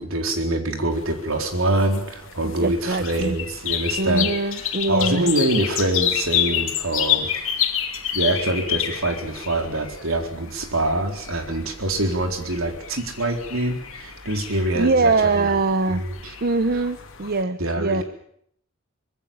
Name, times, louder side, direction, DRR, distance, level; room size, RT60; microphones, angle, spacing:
voice 1, 0.0-7.3 8.1-15.6 15.9-16.3 17.6-18.0, right 1 dB, 70° right, 4 dB, 4.1 m, -25 dB
sound 1, 0.9-17.4, left 10 dB, 70° left, 3.1 m, -29 dB
voice 2, 2.6-3.4 4.0-5.3 14.8-16.0 16.4-18.0, right 3 dB, 50° right, 11 dB, 0.9 m, -22 dB
25.0 x 20.5 x 7.4 m, 0.69 s
head